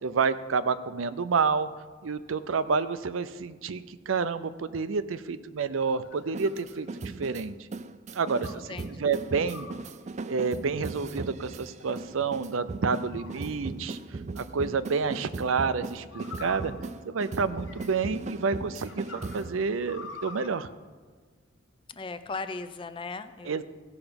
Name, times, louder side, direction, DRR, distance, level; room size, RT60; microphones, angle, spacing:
voice 1, 0.0-1.7 2.0-6.9 7.2-7.5 8.1-8.7 9.0-9.7 10.3-16.7 17.1-20.7 23.5-23.6, right 5 dB, 80° right, 13 dB, 0.5 m, -29 dB
sound 1, 5.6-7.4 8.4-8.7 9.4-9.9 10.7-11.2 11.8-12.4 13.1-13.9 15.0-15.3 16.1-18.2 18.6-20.5, left 3 dB, 70° left, 1.4 m, -46 dB
sound 2, 6.2-19.6, right 3 dB, 35° right, 0.4 m, -38 dB
voice 2, 8.5-9.1 21.9-23.6, left 3 dB, 25° left, 10 dB, 0.5 m, -38 dB
16.5 x 5.9 x 5.2 m, 1.5 s
head